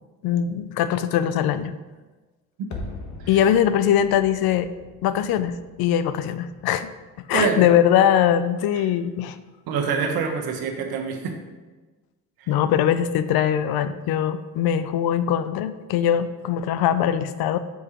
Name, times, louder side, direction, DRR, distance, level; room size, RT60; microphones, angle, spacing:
voice 1, 0.2-1.7 3.3-4.7 5.0-6.9 7.3-9.4 12.5-17.6, left 10 dB, 75° left, 13 dB, 0.5 m, -21 dB
huge explosion in distance, 2.7-7.6 7.9-8.0, left 2 dB, 50° left, 1.1 m, -41 dB
voice 2, 7.3-7.6 9.7-11.3 12.4-12.5, right 5 dB, 70° right, 3 dB, 1.0 m, -25 dB
7.1 x 4.8 x 2.9 m, 1.2 s
supercardioid pair, 80°, 37 cm